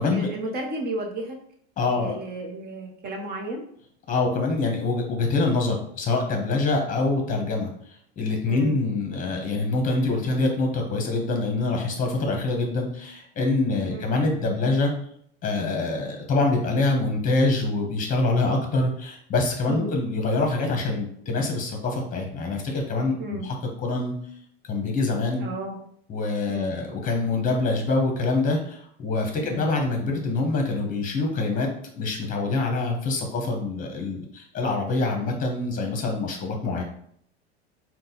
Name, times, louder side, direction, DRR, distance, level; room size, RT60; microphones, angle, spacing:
voice 1, 0.1-1.4 1.9-3.6 8.5-8.7 13.9-14.1 19.7-19.9 23.2-23.5 25.4-25.8 26.5-26.7 29.4-29.6, right 1 dB, 30° right, 1 dB, 1.0 m, -33 dB
voice 2, 1.8-2.2 4.1-7.7 8.2-14.9 15.4-24.1 24.6-25.5 26.1-31.7 32.0-36.8, left 3 dB, 25° left, 2 dB, 1.1 m, -25 dB
3.9 x 2.4 x 3.9 m, 0.65 s
supercardioid pair, 115°, 33 cm